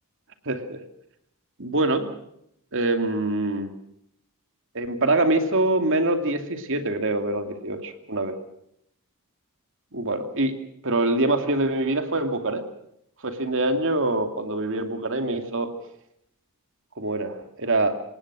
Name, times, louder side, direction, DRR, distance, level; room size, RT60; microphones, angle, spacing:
voice 1, 0.5-0.8 1.6-2.1 2.7-3.7 4.7-8.4 9.9-10.5 10.8-12.6 13.2-15.7 17.0-17.9, right 2 dB, 60° right, 6 dB, 2.7 m, -24 dB
27.5 x 18.5 x 6.2 m, 0.74 s
head